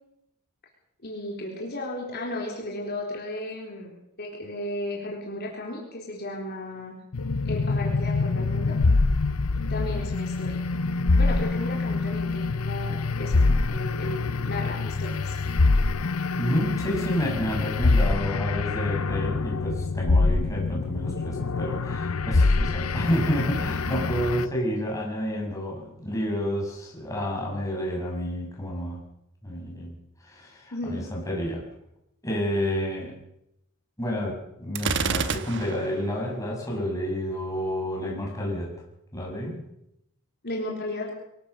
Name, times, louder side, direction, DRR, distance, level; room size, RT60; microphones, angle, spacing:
voice 1, 1.0-3.9 4.2-6.9 7.4-8.7 9.7-10.6 11.2-15.6 30.7-31.1 40.4-41.1, left 1 dB, 50° left, -2 dB, 4.1 m, -34 dB
sound 1, 7.1-24.5, left 3 dB, 85° left, 0.8 m, -25 dB
voice 2, 16.3-29.0 29.4-31.6 32.2-33.1 34.0-38.7 39.1-39.6, equal, 15° left, -2 dB, 6.6 m, -30 dB
Gunshot gunfire, 34.8-36.0, right 5 dB, 55° right, 1.3 m, -28 dB
24.0 x 17.0 x 6.8 m, 0.83 s
head